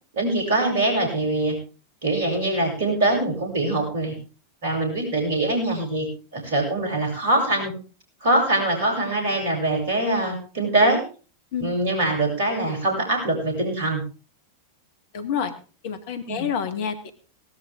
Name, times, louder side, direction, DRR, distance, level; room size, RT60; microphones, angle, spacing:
voice 1, 0.1-1.6 2.0-4.1 4.6-6.1 6.3-7.7 8.2-11.0 11.6-14.0 16.3-16.5, right 2 dB, 55° right, 2 dB, 7.4 m, -23 dB
voice 2, 15.1-15.5 15.8-17.1, left 7 dB, 50° left, 9 dB, 1.8 m, -28 dB
18.0 x 13.0 x 3.6 m, 0.36 s
figure-of-eight pair, 90°, 0 cm